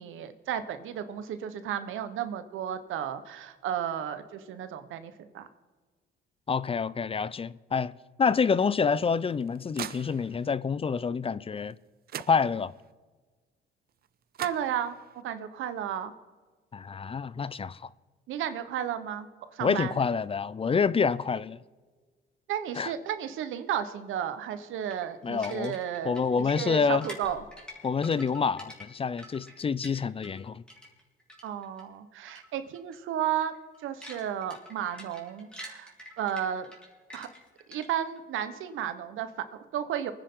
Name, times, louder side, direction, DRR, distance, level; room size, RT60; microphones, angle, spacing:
voice 1, 0.0-5.5 14.4-16.1 18.3-20.0 22.5-26.2 26.5-27.4 31.4-33.5 33.8-35.9 36.2-36.7 37.1-37.3 37.7-40.1, right 9 dB, 85° right, 1.2 m, -33 dB
voice 2, 6.5-7.9 8.2-11.7 12.3-12.7 16.7-17.9 19.6-21.6 22.8-22.9 25.2-25.8 26.0-27.1 27.8-30.6, left 5 dB, 30° left, 0.5 m, -27 dB
sound 1, 8.9-10.6 11.7-11.8 12.1-12.9 14.0-14.1 14.3-15.2, right 11 dB, 50° right, 0.4 m, -42 dB
sound 2, 24.9-30.4 30.7-31.8 32.3-32.5 32.7-33.0 33.4-38.2, left 1 dB, 5° left, 3.4 m, -47 dB
24.0 x 10.0 x 3.8 m
cardioid pair, 90°, 20 cm